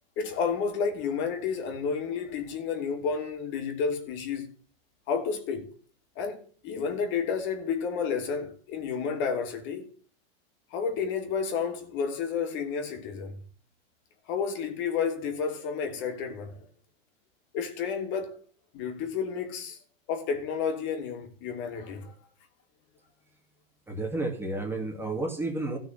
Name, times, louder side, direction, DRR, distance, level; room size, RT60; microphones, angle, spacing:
voice 1, 0.2-4.5 5.1-5.7 6.2-9.9 10.7-13.4 14.3-16.7 17.5-18.4 18.7-19.8 20.1-22.1, left 6 dB, 40° left, 2.9 m, -31 dB
voice 2, 23.9-25.8, right 2 dB, 10° right, 2.3 m, -31 dB
14.5 x 6.2 x 8.2 m
supercardioid pair, 145°, 29 cm